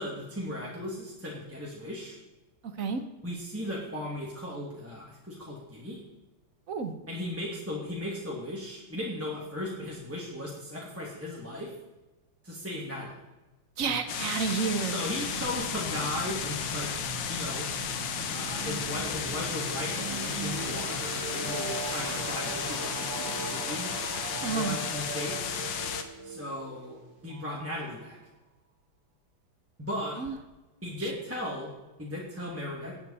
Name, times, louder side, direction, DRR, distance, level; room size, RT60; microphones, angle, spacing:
voice 1, 0.0-2.2 3.2-6.0 7.1-11.7 12.4-13.2 14.8-16.9 17.3-17.7 18.3-23.9 24.4-25.6 26.2-27.0 27.2-28.2 29.8-30.2 30.8-31.7 32.0-33.0, left 1 dB, 5° right, -5 dB, 2.1 m, -36 dB
voice 2, 13.8-15.0 24.4-24.8 30.2-30.4 31.0-31.1, right 5 dB, 50° right, 8 dB, 1.1 m, -30 dB
sound 1, 14.1-26.0, left 8 dB, 65° left, 1.5 m, -34 dB
sound 2, 15.2-28.1, right 5 dB, 90° right, 2.2 m, -39 dB
18.0 x 8.7 x 4.2 m, 1.1 s
omnidirectional pair, 2.3 m